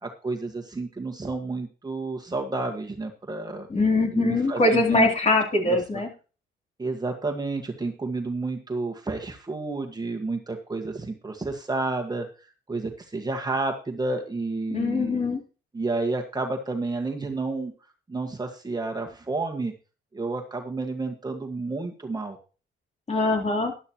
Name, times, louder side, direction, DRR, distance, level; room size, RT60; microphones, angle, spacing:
voice 1, 0.0-3.7 4.1-5.1 5.6-6.0 6.8-12.3 12.7-15.2 15.7-17.7 18.1-19.7 20.1-22.4, right 3 dB, 20° right, 3 dB, 1.6 m, -30 dB
voice 2, 3.7-6.1 14.7-15.4 23.1-23.7, left 2 dB, 35° left, 1 dB, 3.5 m, -22 dB
12.0 x 11.5 x 3.0 m, 0.35 s
cardioid pair, 90°, 20 cm